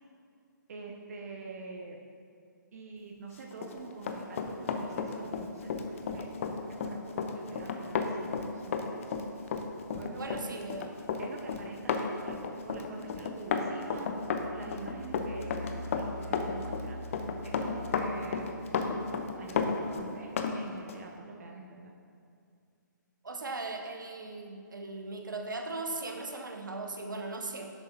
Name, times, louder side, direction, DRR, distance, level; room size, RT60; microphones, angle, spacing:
voice 1, 0.7-2.0 2.7-6.3 6.7-9.0 10.0-10.7 11.2-12.4 12.6-14.1 14.4-18.7 19.3-21.9, right 4 dB, 50° right, 1 dB, 0.7 m, -46 dB
Run, 3.5-20.6 20.9-21.0, left 5 dB, 40° left, 0.6 m, -33 dB
voice 2, 10.2-10.9 23.2-27.7, right 3 dB, 75° right, 3 dB, 0.9 m, -38 dB
sound 1, 13.9-20.1, left 1 dB, 20° left, 2.2 m, -45 dB
10.5 x 7.5 x 2.8 m, 2.3 s
figure-of-eight pair, 135°, 11 cm